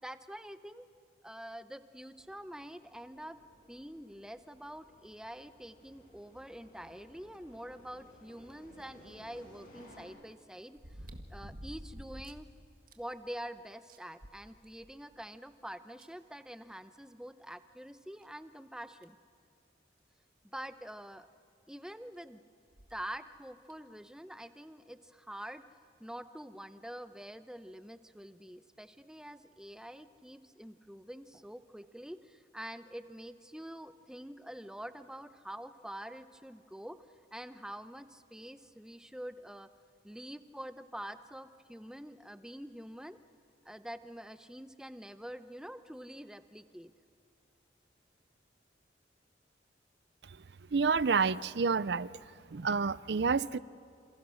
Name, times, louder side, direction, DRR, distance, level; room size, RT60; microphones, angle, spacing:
voice 1, 0.0-0.9 1.2-3.4 3.7-12.5 13.0-19.2 20.4-21.3 21.7-22.4 22.9-25.6 26.0-37.0 37.3-39.7 40.0-43.2 43.6-46.9, equal, 5° right, 0.7 m, -46 dB
sound 1, 2.1-10.0, left 1 dB, 45° left, 7.5 m, -59 dB
sound 2, 8.8-8.9 10.8-12.5 12.9-13.0 13.4-13.5 13.9-15.0 16.0-16.1 17.5-17.6 18.2-18.3 19.0-19.2 20.6-20.7 20.9-21.0 22.7-23.0 23.7-23.8, equal, 50° right, 1.8 m, -48 dB
voice 2, 50.7-52.1 52.5-53.6, right 5 dB, 65° right, 0.5 m, -29 dB
28.5 x 27.5 x 6.4 m
head